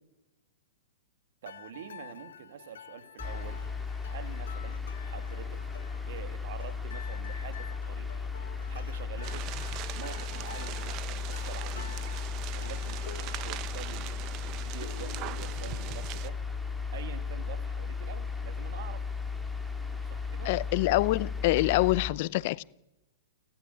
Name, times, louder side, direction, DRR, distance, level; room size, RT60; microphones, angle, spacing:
sound 1, 1.4-16.5, left 8 dB, 75° left, 1.4 m, -49 dB
voice 1, 1.4-3.6 4.1-4.8 5.1-5.7 6.1-8.1 8.7-9.5 9.9-12.0 12.5-16.4 16.9-19.1 19.9-20.5, right 9 dB, 60° right, 9 dB, 2.5 m, -46 dB
sound 2, 3.2-22.1, left 5 dB, ahead, 2.1 m, -36 dB
sound 3, 9.2-16.3, right 14 dB, 35° right, 1.1 m, -41 dB
voice 2, 20.4-22.6, left 19 dB, 50° left, 20 dB, 0.7 m, -26 dB
29.5 x 12.5 x 9.5 m, 1.0 s
hypercardioid pair, 130°, 0 cm